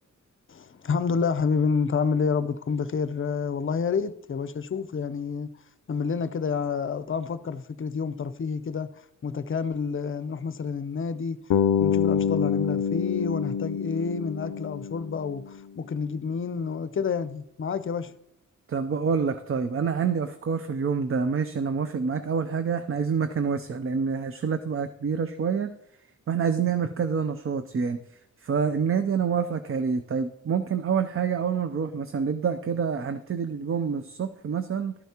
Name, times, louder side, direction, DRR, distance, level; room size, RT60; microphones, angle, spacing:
voice 1, 0.5-5.5 5.9-8.9 9.2-11.4 11.8-18.1, left 5 dB, 45° left, 0.6 m, -29 dB
Bass guitar, 11.5-15.6, left 7 dB, 90° left, 0.5 m, -26 dB
voice 2, 18.7-25.7 26.3-28.0 28.4-35.0, right 6 dB, 45° right, 0.5 m, -27 dB
12.0 x 9.2 x 2.9 m
wide cardioid pair, 115°, 30 cm